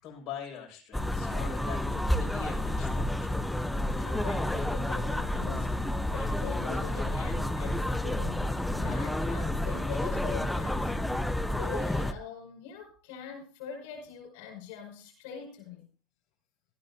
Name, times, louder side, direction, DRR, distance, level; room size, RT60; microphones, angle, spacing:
voice 1, 0.0-3.5, left 8 dB, 55° left, -3 dB, 6.6 m, -43 dB
sound 1, 0.9-12.1, left 1 dB, 5° left, 0.9 m, -30 dB
voice 2, 3.8-10.9 11.5-15.9, left 6 dB, 90° left, 1 dB, 5.6 m, -43 dB
17.0 x 14.0 x 2.8 m, 0.36 s
supercardioid pair, 115°, 0 cm